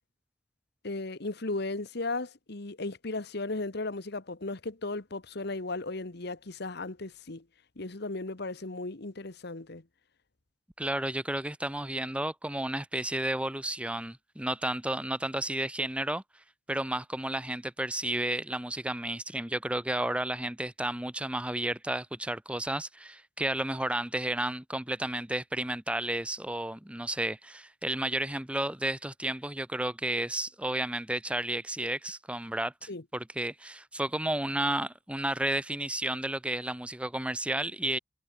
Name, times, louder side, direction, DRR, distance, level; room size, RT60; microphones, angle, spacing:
voice 1, 0.8-7.4 7.8-9.8 32.9-33.0, left 2 dB, 60° left, 1.4 m, -36 dB
voice 2, 10.8-16.2 16.7-38.0, right 1 dB, 5° right, 1.0 m, -32 dB
head